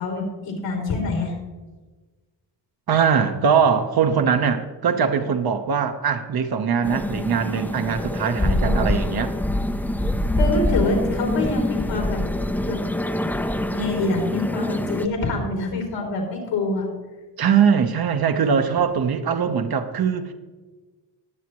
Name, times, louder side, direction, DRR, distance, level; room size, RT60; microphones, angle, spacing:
voice 1, 0.0-1.3 8.4-8.9 10.4-12.2 12.7-12.8 13.7-16.9, left 3 dB, 80° left, 0 dB, 3.3 m, -26 dB
voice 2, 2.9-9.3 17.4-20.3, right 6 dB, 55° right, 6 dB, 1.1 m, -21 dB
sound 1, 6.8-15.1, left 1 dB, 5° left, 0.6 m, -24 dB
19.5 x 7.4 x 3.1 m, 1.3 s
cardioid pair, 80°, 43 cm